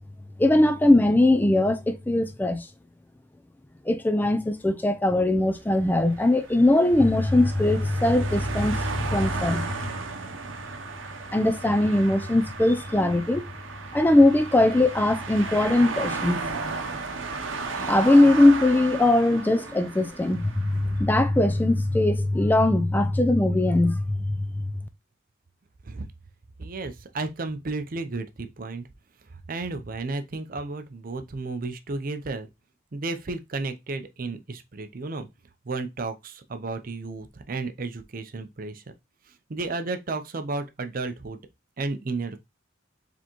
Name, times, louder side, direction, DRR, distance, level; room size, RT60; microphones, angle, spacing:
voice 1, 0.4-2.7 3.9-9.7 11.3-13.5 13.9-16.4 17.7-24.7, left 1 dB, 10° left, 0.4 m, -21 dB
sound 1, 5.8-21.2, right 4 dB, 85° right, 0.7 m, -34 dB
voice 2, 26.6-28.9 29.3-32.5 32.9-35.3 35.6-38.8 39.5-41.4 41.8-42.4, right 3 dB, 45° right, 0.5 m, -33 dB
4.9 x 3.5 x 3.0 m
head